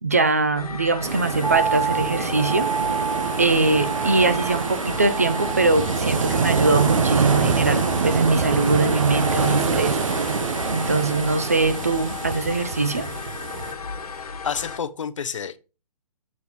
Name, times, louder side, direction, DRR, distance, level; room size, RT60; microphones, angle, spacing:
voice 1, 0.0-2.7 3.4-10.0 10.7-13.1, right 3 dB, 25° right, 0.4 m, -22 dB
sound 1, 0.5-14.8, left 5 dB, 70° left, 1.4 m, -35 dB
sound 2, 1.0-13.7, right 5 dB, 55° right, 1.0 m, -25 dB
sound 3, 1.4-13.7 14.0-14.1, right 6 dB, 85° right, 1.0 m, -32 dB
voice 2, 14.4-15.6, left 7 dB, 50° left, 0.6 m, -29 dB
7.1 x 4.0 x 4.5 m
hypercardioid pair, 180°, 20 cm